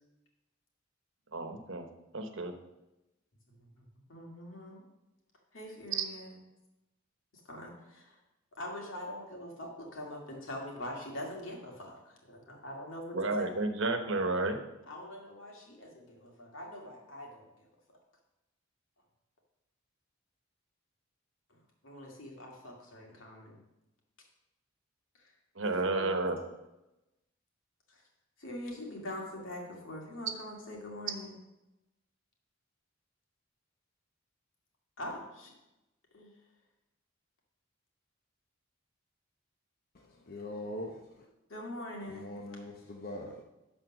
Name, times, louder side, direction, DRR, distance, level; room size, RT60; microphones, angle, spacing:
voice 1, 1.3-1.9 2.1-2.5 6.0-6.1 13.1-14.6 25.6-26.4, right 2 dB, 70° right, 6 dB, 1.1 m, -31 dB
voice 2, 3.5-4.8 5.5-6.4 7.5-8.1 8.6-13.5 13.8-13.9 14.9-17.4 21.8-23.6 25.2-25.3 25.6-26.2 27.9-28.0 28.4-31.3 35.0-35.5 36.1-36.3 41.5-42.3, left 1 dB, 75° left, -1 dB, 2.4 m, -43 dB
voice 3, 39.9-41.3 42.0-43.4, left 1 dB, 50° left, 0 dB, 0.8 m, -42 dB
12.0 x 4.3 x 6.3 m, 0.97 s
head